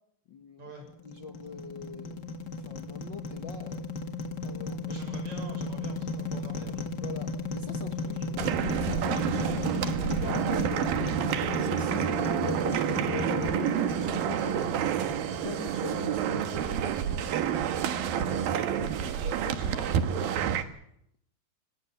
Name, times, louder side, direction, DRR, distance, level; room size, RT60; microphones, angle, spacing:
voice 1, 0.3-0.7 1.0-2.4 2.6-3.9 4.4-5.0 7.0-8.2 8.7-9.7 10.0-11.2 11.6-15.1 15.4-17.8 18.1-19.7 20.2-20.3, left 6 dB, 75° left, 4 dB, 1.0 m, -42 dB
sound 1, 0.9-16.1, left 3 dB, 45° left, 1.4 m, -35 dB
voice 2, 4.9-6.9 8.0-8.3 19.5-19.9 20.5-20.6, right 2 dB, 45° right, 3 dB, 8.5 m, -45 dB
sound 2, 8.4-20.6, right 9 dB, 70° right, 2.9 m, -29 dB
25.5 x 20.5 x 7.1 m, 0.73 s
omnidirectional pair, 4.6 m